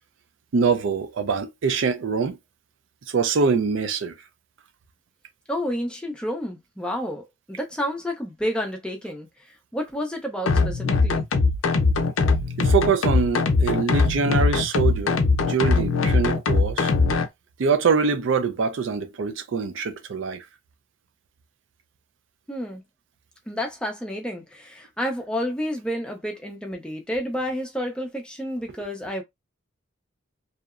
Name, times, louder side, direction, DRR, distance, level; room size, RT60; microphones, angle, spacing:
voice 1, 0.5-2.4 3.1-4.1 12.6-15.2 15.5-16.9 17.6-20.4, right 5 dB, 70° right, 0.4 m, -24 dB
voice 2, 5.5-9.3 9.7-11.3 22.5-22.8 23.5-29.2, equal, 5° left, 0.5 m, -30 dB
sound 1, 10.5-17.3, left 3 dB, 80° left, 0.5 m, -21 dB
2.7 x 2.0 x 2.4 m
head